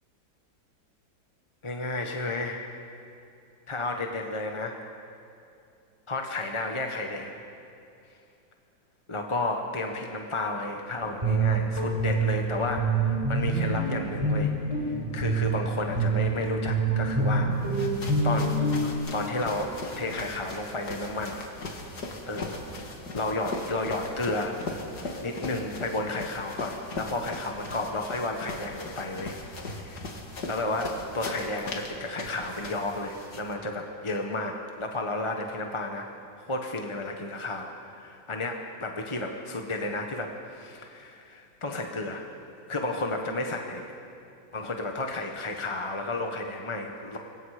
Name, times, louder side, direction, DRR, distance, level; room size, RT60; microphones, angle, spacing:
voice 1, 1.6-2.6 3.7-4.8 6.1-7.4 9.1-14.5 14.8-18.0 18.2-18.5 18.8-19.7 20.0-21.4 22.3-22.8 23.1-24.6 25.2-29.4 29.7-30.1 30.5-36.1 36.4-42.3 42.7-43.9 44.5-47.2, left 2 dB, 20° left, 3 dB, 0.8 m, -32 dB
Guitar, 11.0-18.9, right 3 dB, 15° right, 6.1 m, -26 dB
sound 1, 17.5-33.5, left 2 dB, 55° left, 2.5 m, -39 dB
26.5 x 22.0 x 4.9 m, 2.7 s
omnidirectional pair, 2.1 m